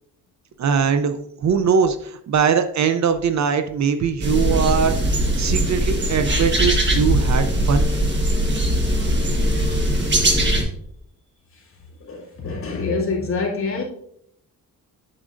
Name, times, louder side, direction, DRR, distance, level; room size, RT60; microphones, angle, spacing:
voice 1, 0.6-5.0 5.4-7.9, right 7 dB, 50° right, 9 dB, 0.5 m, -21 dB
sound 1, 4.2-10.6, equal, 30° right, 1.2 m, -20 dB
voice 2, 12.0-13.8, left 4 dB, 35° left, -4 dB, 2.2 m, -26 dB
8.6 x 7.8 x 2.5 m, 0.71 s
cardioid pair, 140°, 36 cm